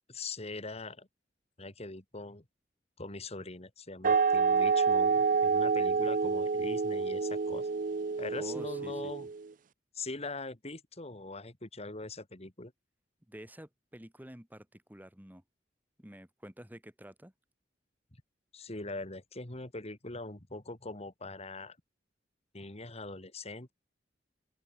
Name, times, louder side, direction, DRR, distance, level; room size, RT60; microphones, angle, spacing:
voice 1, 0.1-1.1 1.6-2.4 3.0-7.7 8.2-9.3 9.9-12.7 18.5-21.8 22.5-23.7, left 3 dB, 35° left, 2.6 m, -42 dB
sound 1, 4.0-9.5, right 5 dB, 45° right, 0.5 m, -28 dB
voice 2, 8.4-9.1 13.3-15.4 16.0-17.3, equal, 10° right, 2.1 m, -49 dB
open air
head